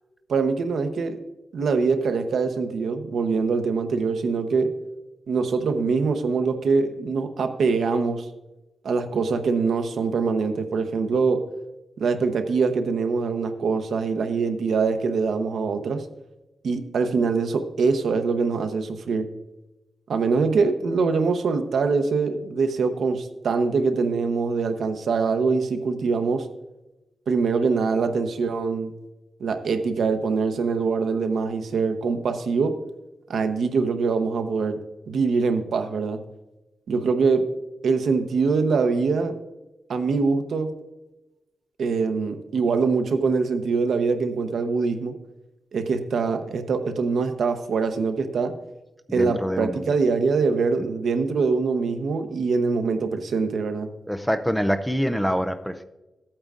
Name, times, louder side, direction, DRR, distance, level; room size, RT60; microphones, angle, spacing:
voice 1, 0.3-1.2 1.5-4.7 5.3-8.3 8.8-11.4 12.0-16.0 16.6-19.3 20.1-26.5 27.3-28.9 29.4-32.7 33.3-34.8 35.1-36.2 36.9-37.5 37.8-39.4 39.9-40.7 41.8-45.1 45.7-48.5 49.1-53.9, right 4 dB, 80° right, 7 dB, 0.9 m, -23 dB
voice 2, 49.1-49.8 54.1-55.8, equal, ahead, 8 dB, 0.4 m, -25 dB
14.5 x 8.8 x 2.5 m, 1.0 s
wide cardioid pair, 150°, 0 cm